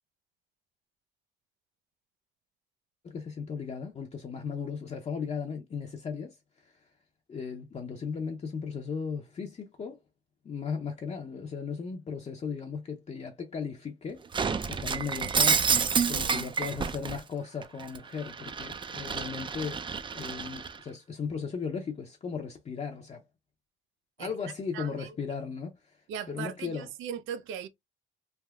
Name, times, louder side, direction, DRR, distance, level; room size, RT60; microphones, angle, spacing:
voice 1, 3.0-6.9 7.3-10.0 10.4-14.2 14.7-15.6 16.1-23.2 24.2-26.9, left 6 dB, 35° left, 0.5 m, -36 dB
Shatter, 14.3-17.2 17.6-20.8, right 5 dB, 25° right, 0.4 m, -29 dB
voice 2, 16.1-16.7 24.2-24.3 24.7-25.1 26.1-27.7, right 8 dB, 85° right, 0.5 m, -39 dB
3.4 x 2.7 x 2.2 m
cardioid pair, 90°, 20 cm